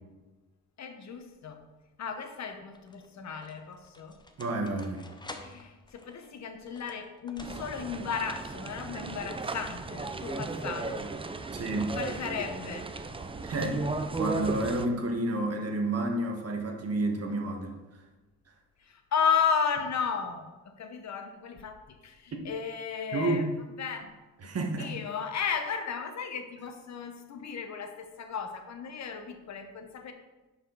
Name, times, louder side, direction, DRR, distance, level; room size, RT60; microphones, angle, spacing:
voice 1, 0.8-1.7 2.0-4.2 5.3-11.1 11.9-12.9 18.8-23.5 23.8-24.1 24.8-30.1, left 6 dB, 50° left, 6 dB, 1.0 m, -34 dB
sound 1, 1.2-1.7 2.5-8.0, left 2 dB, 15° left, 0.8 m, -50 dB
voice 2, 4.4-5.1 11.5-12.0 13.4-13.9 14.1-17.8 23.1-23.5 24.4-25.0, right 2 dB, 45° right, 2 dB, 1.6 m, -30 dB
sound 2, 7.4-14.9, right 3 dB, 15° right, 0.6 m, -35 dB
11.0 x 5.0 x 4.0 m, 1.2 s
cardioid pair, 90°, 34 cm